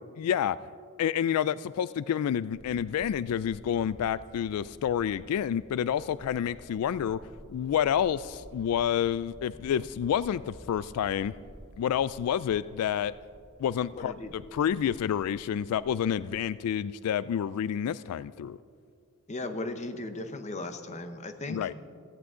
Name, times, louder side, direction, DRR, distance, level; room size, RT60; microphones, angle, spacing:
voice 1, 0.2-0.6 1.0-7.2 7.5-11.4 11.8-13.1 13.6-18.6 21.5-21.7, left 9 dB, 80° left, 17 dB, 0.3 m, -29 dB
sound 1, 2.5-16.5, equal, 45° right, 1.9 m, -52 dB
voice 2, 13.9-14.3 19.3-21.6, left 2 dB, 30° left, 8 dB, 0.9 m, -37 dB
16.0 x 15.0 x 3.8 m, 2.2 s
head